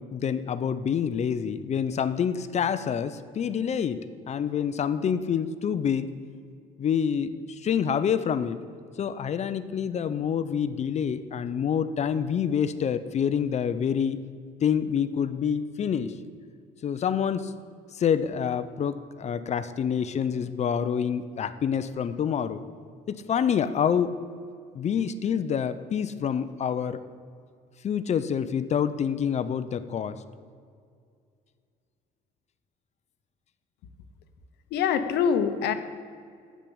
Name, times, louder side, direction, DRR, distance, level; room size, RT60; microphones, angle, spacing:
voice 1, 0.0-6.1 6.8-8.6 9.0-14.2 14.6-16.1 16.8-17.5 17.9-22.6 23.1-24.2 24.7-27.0 27.8-30.2, left 7 dB, 40° left, 12 dB, 0.6 m, -27 dB
voice 2, 34.7-35.7, left 7 dB, 80° left, 10 dB, 0.9 m, -24 dB
8.7 x 7.6 x 8.6 m, 2.2 s
cardioid pair, 110°, 17 cm